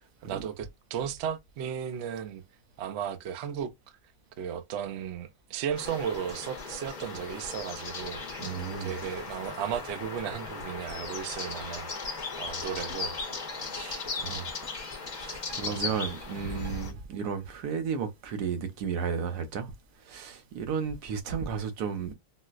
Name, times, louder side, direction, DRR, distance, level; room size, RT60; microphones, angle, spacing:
voice 1, 0.2-2.4 2.8-3.7 4.4-8.2 8.8-11.9 12.4-13.2 15.6-16.0, right 8 dB, 70° right, 0.6 m, -35 dB
sound 1, 5.7-17.9, equal, 15° right, 0.6 m, -48 dB
sound 2, 5.8-16.9, left 4 dB, 40° left, 0.7 m, -38 dB
voice 2, 8.4-9.0 13.7-14.6 15.1-19.7 20.0-22.1, right 6 dB, 90° right, 1.3 m, -33 dB
4.1 x 2.1 x 2.3 m
omnidirectional pair, 1.6 m